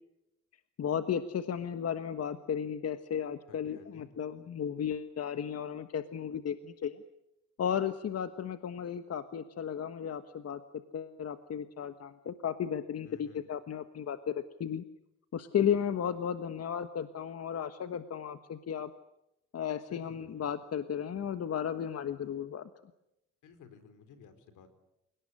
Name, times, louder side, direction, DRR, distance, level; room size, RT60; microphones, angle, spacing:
voice 1, 0.8-7.0 7.6-14.8 15.3-18.9 19.5-22.7, left 8 dB, 55° left, 10 dB, 1.4 m, -34 dB
voice 2, 3.5-4.1 13.0-13.4 19.9-20.4 23.4-24.7, left 6 dB, 85° left, 9 dB, 4.3 m, -55 dB
29.0 x 18.5 x 10.0 m, 0.86 s
cardioid pair, 90°, 30 cm